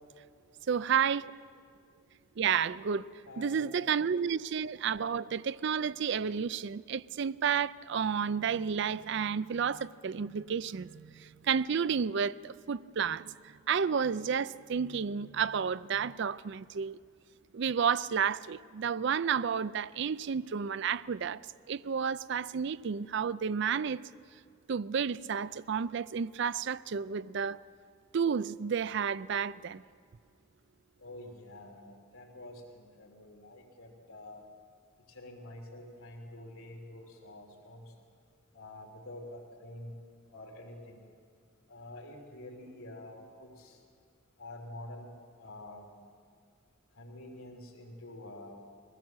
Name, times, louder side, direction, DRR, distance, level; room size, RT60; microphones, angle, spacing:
voice 1, 0.7-1.2 2.4-3.0 3.4-10.9 11.5-13.2 13.7-16.9 17.5-21.4 21.7-24.0 24.7-27.6 28.1-29.8, right 7 dB, 55° right, 0.4 m, -31 dB
voice 2, 3.3-3.8 31.0-34.4 35.1-37.9 38.5-40.0 40.3-41.1 41.7-43.8 44.4-45.1 45.4-45.9 46.9-48.6, left 1 dB, 85° left, 3.1 m, -47 dB
22.5 x 16.5 x 7.4 m
head